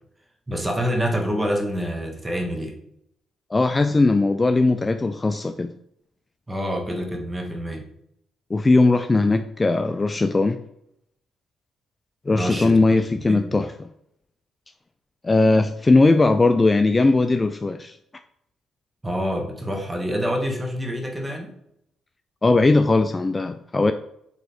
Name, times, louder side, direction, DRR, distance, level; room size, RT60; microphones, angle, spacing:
voice 1, 0.5-2.8 6.5-7.9 12.3-12.7 13.3-13.6 19.0-21.5, equal, 15° right, 2 dB, 1.4 m, -27 dB
voice 2, 3.5-5.7 8.5-10.6 12.3-13.9 15.2-18.0 22.4-23.9, left 3 dB, 25° left, 9 dB, 0.3 m, -19 dB
8.1 x 3.1 x 4.4 m, 0.76 s
cardioid pair, 90°, 0 cm